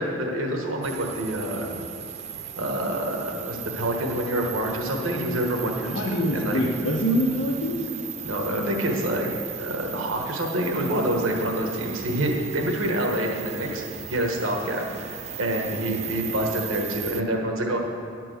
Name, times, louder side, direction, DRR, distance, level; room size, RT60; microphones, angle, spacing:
voice 1, 0.0-1.8 2.6-6.6 8.2-9.3 9.6-13.8 14.1-17.8, right 1 dB, 90° right, 1 dB, 1.3 m, -27 dB
sound 1, 0.8-17.2, right 9 dB, 35° right, 0.4 m, -37 dB
voice 2, 5.8-7.8, equal, 75° left, -5 dB, 1.4 m, -24 dB
11.0 x 4.5 x 7.7 m, 2.6 s
head